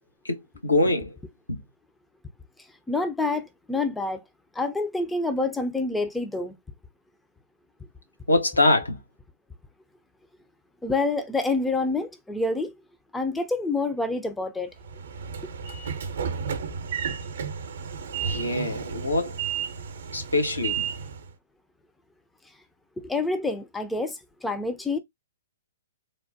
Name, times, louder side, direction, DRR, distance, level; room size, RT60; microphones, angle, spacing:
voice 1, 0.2-1.2 1.5-1.6 8.3-9.0 18.2-19.4 20.1-20.9, left 2 dB, 85° left, 0.9 m, -24 dB
voice 2, 2.9-4.2 4.6-6.5 10.8-12.7 13.1-14.7 23.0-25.0, left 3 dB, 5° left, 0.4 m, -27 dB
Train / Sliding door, 14.8-21.3, right 7 dB, 60° right, 0.6 m, -32 dB
3.3 x 2.1 x 2.6 m
figure-of-eight pair, 120°, 0 cm